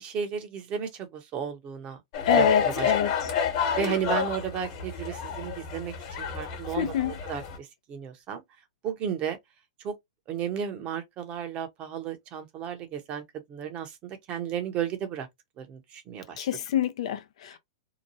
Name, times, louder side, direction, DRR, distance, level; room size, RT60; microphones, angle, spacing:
voice 1, 0.0-2.0 2.3-2.9 3.7-8.4 8.8-9.4 9.8-9.9 10.3-13.2 13.5-15.3 15.6-16.5, right 8 dB, 35° right, 0.9 m, -34 dB
sound 1, 2.1-7.6, left 6 dB, 50° left, 1.3 m, -29 dB
voice 2, 2.3-3.1 6.8-7.1 16.4-17.6, left 9 dB, 65° left, 0.6 m, -26 dB
2.9 x 2.2 x 2.7 m
hypercardioid pair, 120°, 3 cm